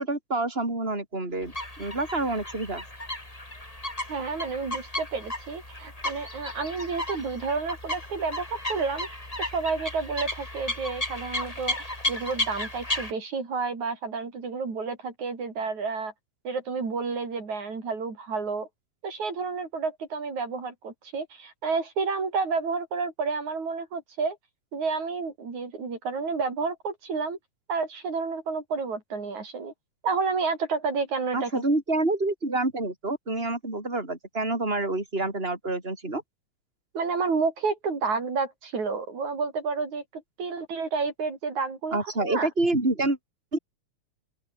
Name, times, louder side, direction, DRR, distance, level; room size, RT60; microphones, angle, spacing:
voice 1, 0.0-2.8 31.3-36.2 41.9-43.2 43.5-43.6, right 2 dB, 20° right, 6.4 m, -27 dB
sound 1, 1.4-13.1, left 1 dB, 10° left, 4.6 m, -34 dB
voice 2, 4.1-9.1 9.4-16.1 16.4-18.7 19.0-24.4 24.7-27.4 27.7-29.7 30.0-31.5 36.9-42.5, right 4 dB, 75° right, 6.2 m, -30 dB
open air
omnidirectional pair, 3.3 m